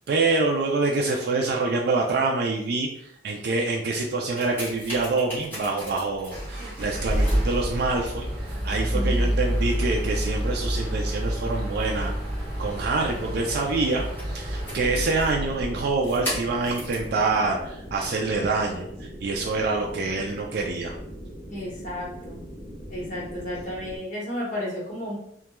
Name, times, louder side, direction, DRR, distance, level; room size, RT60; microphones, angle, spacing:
voice 1, 0.1-2.9 3.2-20.9, right 3 dB, 60° right, 0 dB, 0.3 m, -26 dB
sound 1, 4.1-17.1 17.8-17.9, equal, 10° left, 0.9 m, -29 dB
voice 2, 8.9-9.4 21.5-22.4 22.9-25.2, equal, 45° left, -5 dB, 0.9 m, -33 dB
sound 2, 14.8-24.0, equal, 20° right, 0.6 m, -41 dB
2.3 x 2.2 x 2.9 m, 0.72 s
head